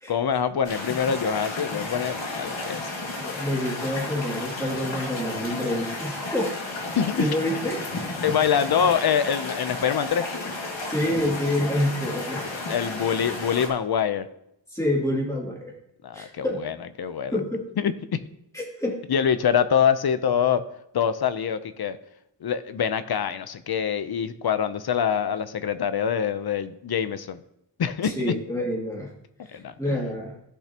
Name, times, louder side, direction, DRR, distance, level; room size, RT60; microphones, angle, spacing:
voice 1, 0.1-2.9 6.9-7.5 8.2-10.3 12.5-14.3 16.0-17.4 17.8-17.9 19.1-20.6 20.9-22.0 22.4-27.4 27.8-28.3 29.5-30.0, left 8 dB, 60° left, 12 dB, 0.7 m, -25 dB
sound 1, 0.6-13.7, left 2 dB, 85° left, 2.1 m, -33 dB
voice 2, 3.2-6.6 7.2-7.8 10.9-12.8 14.7-15.7 16.1-16.6 17.3-17.7 18.5-19.0 28.0-29.1 29.5-30.3, left 1 dB, 5° left, -4 dB, 2.7 m, -27 dB
15.5 x 5.9 x 2.9 m, 0.79 s
wide cardioid pair, 145°, 44 cm